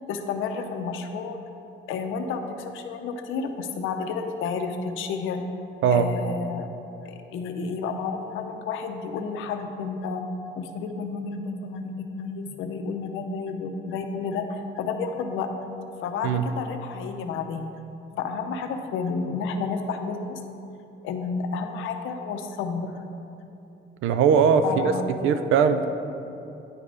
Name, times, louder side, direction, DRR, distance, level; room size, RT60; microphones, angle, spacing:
voice 1, 0.1-1.4 1.9-5.4 5.9-6.7 7.0-10.2 10.5-15.5 16.0-17.7 18.2-20.4 21.0-23.0 24.6-25.2, left 5 dB, 90° left, 6 dB, 0.6 m, -31 dB
voice 2, 24.0-24.9 25.2-25.9, right 7 dB, 85° right, 9 dB, 0.4 m, -20 dB
9.6 x 3.3 x 5.0 m, 2.8 s
cardioid pair, 90°, 20 cm